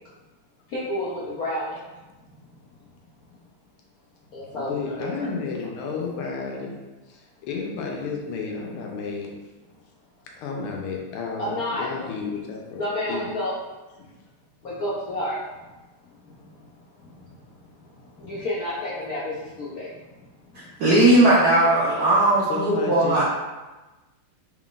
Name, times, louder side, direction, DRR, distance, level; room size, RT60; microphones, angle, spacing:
voice 1, 0.7-1.7 4.3-5.3 11.4-12.0 12.7-13.5 14.6-15.4 17.0-17.1 18.2-19.9, left 1 dB, 70° left, -8 dB, 0.8 m, -30 dB
voice 2, 4.5-6.7 7.1-9.3 10.4-12.8 13.1-13.3 14.0-14.1 22.5-23.2, left 5 dB, 90° left, 0 dB, 1.6 m, -32 dB
voice 3, 20.5-23.2, right 1 dB, 70° right, -7 dB, 0.9 m, -18 dB
4.2 x 3.8 x 2.4 m, 1.1 s
omnidirectional pair, 2.4 m